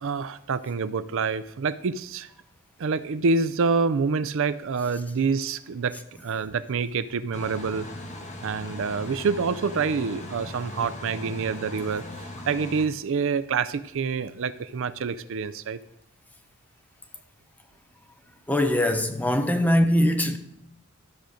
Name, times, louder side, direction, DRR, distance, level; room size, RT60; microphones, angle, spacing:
voice 1, 0.0-2.3 2.8-5.9 6.2-7.9 8.4-15.8, right 5 dB, 65° right, 0.5 m, -27 dB
sound 1, 7.3-12.9, left 1 dB, 35° left, 1.3 m, -39 dB
voice 2, 18.5-20.4, left 1 dB, 5° left, 0.8 m, -22 dB
13.0 x 5.1 x 6.4 m
head